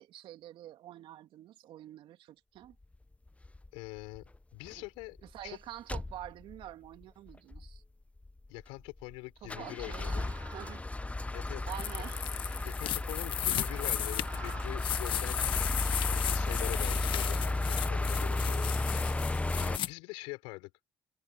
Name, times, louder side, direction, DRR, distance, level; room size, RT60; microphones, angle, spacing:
voice 1, 0.0-2.8 4.8-4.9 5.2-7.8 9.4-10.8 11.7-12.2, right 13 dB, 65° right, 2.7 m, -47 dB
sound 1, 3.4-3.7 4.2-4.4 4.7-4.8 5.0-5.5 5.9-6.6 7.0-7.1 7.3-7.8 8.3-9.1 9.4-19.8, left 2 dB, 15° left, 0.9 m, -33 dB
voice 2, 3.7-5.2 5.4-5.6 8.5-10.2 11.3-11.7 12.6-15.5 16.0-19.1 19.6-20.7, left 26 dB, 80° left, 5.9 m, -44 dB
sound 2, 9.8-10.9 11.7-12.8 13.5-14.9, right 5 dB, 45° right, 2.2 m, -52 dB
sound 3, 11.7-19.9, left 11 dB, 65° left, 1.5 m, -35 dB
hypercardioid pair, 55°, 9 cm